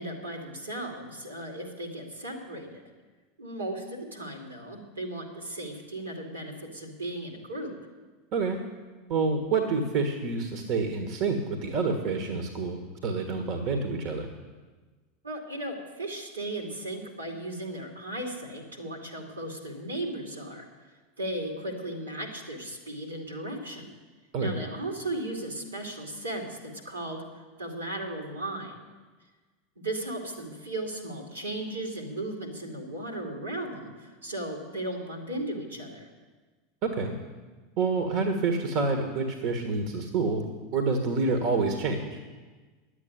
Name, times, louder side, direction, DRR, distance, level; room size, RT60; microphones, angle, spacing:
voice 1, 0.0-2.8 3.4-7.7 15.2-20.7 21.2-23.9 24.4-28.8 29.8-36.1, right 1 dB, 80° right, 2 dB, 2.7 m, -36 dB
voice 2, 9.1-14.3 24.3-24.6 36.8-37.1 37.8-40.4 40.7-42.2, right 4 dB, 50° right, 5 dB, 1.5 m, -28 dB
10.5 x 8.4 x 9.7 m, 1.3 s
figure-of-eight pair, 80°, 0 cm